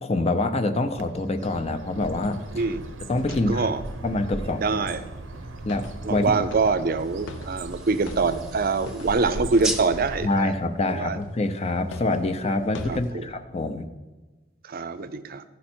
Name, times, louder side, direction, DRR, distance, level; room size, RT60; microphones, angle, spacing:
voice 1, 0.0-2.6 3.1-3.7 4.0-4.6 5.6-6.2 10.2-13.9, left 2 dB, 35° left, 7 dB, 0.6 m, -26 dB
Bird, 0.9-10.7, right 2 dB, 90° right, 0.8 m, -38 dB
sound 1, 2.0-10.6 11.2-13.1, left 1 dB, 90° left, 0.8 m, -44 dB
voice 2, 2.5-2.9 3.5-3.8 4.6-5.0 6.0-10.5 10.9-11.2 12.9-13.3 14.6-15.4, right 4 dB, 50° right, 12 dB, 0.5 m, -25 dB
sound 2, 7.0-11.8, right 1 dB, 5° right, 0.7 m, -38 dB
14.5 x 5.3 x 4.4 m, 1.2 s
head